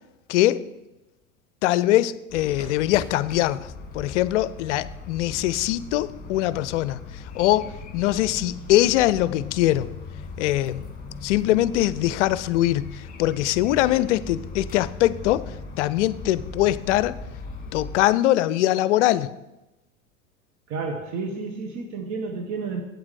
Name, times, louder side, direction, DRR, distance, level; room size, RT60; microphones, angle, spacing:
voice 1, 0.3-0.6 1.6-3.6 3.9-7.0 7.3-9.9 10.4-10.9 11.2-12.8 13.2-15.4 15.8-17.2 17.7-19.3, left 14 dB, 60° left, 17 dB, 0.5 m, -22 dB
sound 1, 2.3-18.0, left 3 dB, 20° left, 2.0 m, -39 dB
voice 2, 20.7-22.8, right 4 dB, 45° right, 4 dB, 1.1 m, -31 dB
8.5 x 7.3 x 4.7 m, 1.0 s
figure-of-eight pair, 85°, 41 cm